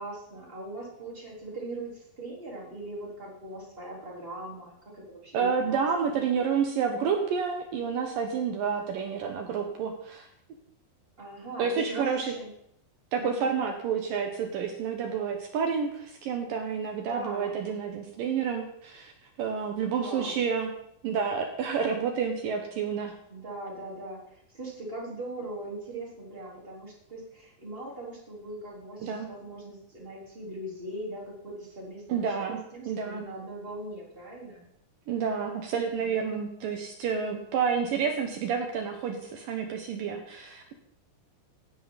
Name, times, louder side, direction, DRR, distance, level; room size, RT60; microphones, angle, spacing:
voice 1, 0.0-5.9 11.2-12.5 13.2-13.5 17.1-17.5 20.0-20.4 23.3-34.7 36.0-36.1, right 1 dB, 15° right, -3 dB, 3.5 m, -40 dB
voice 2, 5.3-10.3 11.6-12.3 13.1-19.1 19.4-20.7 21.0-23.1 29.0-29.3 32.1-33.2 35.1-40.7, right 6 dB, 70° right, 5 dB, 2.3 m, -29 dB
16.5 x 11.0 x 4.1 m, 0.74 s
omnidirectional pair, 5.1 m